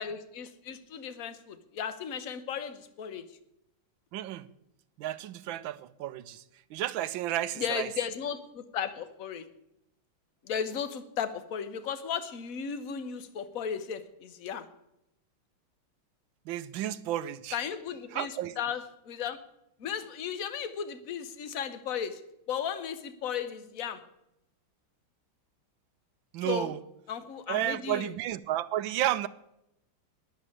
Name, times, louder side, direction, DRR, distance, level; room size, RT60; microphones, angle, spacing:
voice 1, 0.0-3.2 7.6-9.4 10.4-14.6 17.5-19.4 19.8-22.2 22.5-24.0 26.4-26.7 27.1-28.1, left 8 dB, 50° left, 1.2 m, -35 dB
voice 2, 4.1-4.4 5.0-6.4 6.7-7.9 16.5-17.6 18.1-18.5 26.3-26.8 27.5-29.3, right 13 dB, 70° right, 1.3 m, -32 dB
10.5 x 9.0 x 9.8 m
omnidirectional pair, 2.4 m